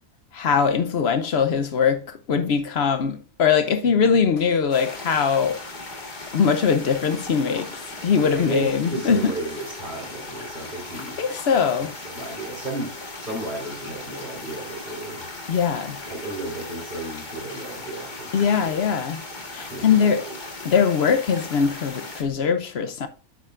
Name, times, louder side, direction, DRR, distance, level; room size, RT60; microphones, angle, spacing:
voice 1, 0.3-5.6 6.0-9.3 11.2-11.9 15.5-16.0 18.3-19.2 19.5-20.2 20.6-23.1, left 6 dB, 55° left, 0.7 m, -21 dB
sound 1, 4.7-22.2, left 2 dB, 30° left, 1.5 m, -38 dB
voice 2, 8.2-11.2 12.0-15.3 16.1-18.7 19.7-20.4, right 2 dB, 35° right, 4.5 m, -33 dB
8.8 x 8.2 x 2.4 m
omnidirectional pair, 1.6 m